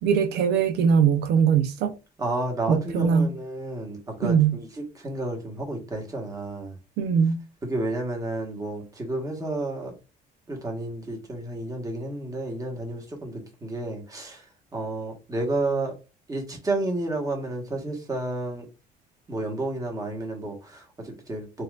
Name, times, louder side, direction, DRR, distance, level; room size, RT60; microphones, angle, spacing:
voice 1, 0.0-1.9 2.7-3.3 4.2-4.6 7.0-7.4, right 7 dB, 75° right, 0.5 m, -21 dB
voice 2, 2.2-6.7 7.6-9.9 10.5-14.4 14.7-15.9 16.3-18.7 19.3-21.6, right 2 dB, 20° right, 1.2 m, -31 dB
4.2 x 2.4 x 2.4 m
cardioid pair, 110°, 17 cm